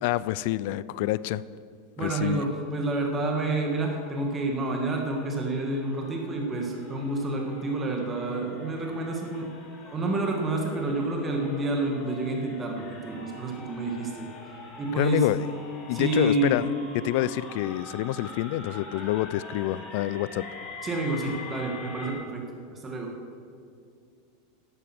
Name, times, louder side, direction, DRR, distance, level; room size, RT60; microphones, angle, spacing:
voice 1, 0.0-1.4 2.0-2.5 15.0-15.5 15.9-16.7 17.0-20.4, left 15 dB, 60° left, 18 dB, 0.3 m, -27 dB
voice 2, 2.0-9.5 9.8-14.3 14.8-15.3 15.9-16.6 20.8-22.4 22.7-23.1, right 2 dB, 20° right, 1 dB, 1.7 m, -29 dB
sound 1, 2.7-22.1, left 3 dB, 30° left, 3.0 m, -45 dB
11.5 x 8.7 x 6.0 m, 2.4 s
supercardioid pair, 150°, 0 cm